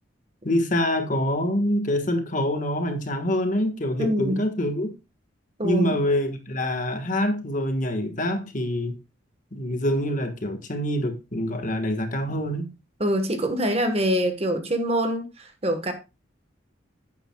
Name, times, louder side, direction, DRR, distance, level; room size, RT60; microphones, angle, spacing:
voice 1, 0.4-4.9 5.6-9.0 9.5-12.7, left 1 dB, 40° left, 1.4 m, -25 dB
voice 2, 4.0-4.4 5.6-5.9 13.0-15.9, equal, 30° right, 1.2 m, -24 dB
11.0 x 8.9 x 2.2 m
head